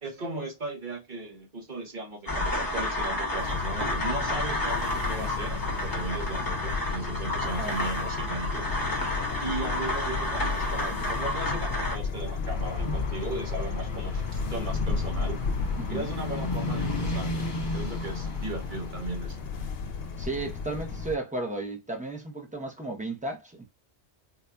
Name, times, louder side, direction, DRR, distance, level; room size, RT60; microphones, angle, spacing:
voice 1, 0.0-8.7 9.4-15.4 15.9-19.4, right 2 dB, 45° right, 1.0 m, -37 dB
sound 1, 2.3-12.0, left 1 dB, 20° left, 1.0 m, -31 dB
sound 2, 3.4-21.2, left 4 dB, 65° left, 0.8 m, -33 dB
voice 2, 7.4-7.8 15.8-16.1 20.2-23.6, right 2 dB, 10° right, 0.7 m, -34 dB
sound 3, 12.4-19.8 20.1-20.3, left 1 dB, 50° left, 1.3 m, -35 dB
3.9 x 2.7 x 2.2 m
omnidirectional pair, 1.2 m